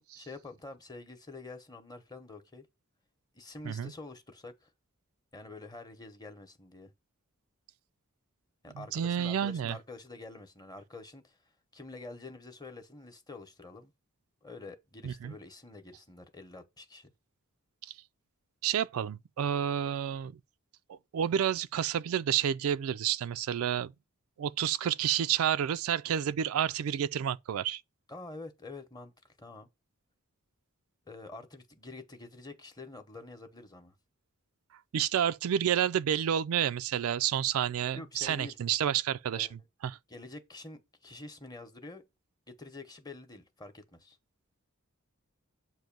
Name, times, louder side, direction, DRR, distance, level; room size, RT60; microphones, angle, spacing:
voice 1, 0.0-2.7 3.3-4.7 5.3-6.9 8.6-11.4 11.7-13.9 14.4-17.1 28.1-29.7 31.1-33.9 37.9-38.6 39.3-39.7 40.1-42.0 42.5-44.2, left 2 dB, 20° left, 0.8 m, -47 dB
voice 2, 8.7-9.8 15.0-15.3 17.8-17.9 18.6-20.3 20.9-23.9 24.4-27.8 34.9-40.0, right 9 dB, 75° right, 0.3 m, -30 dB
7.6 x 2.7 x 5.2 m
head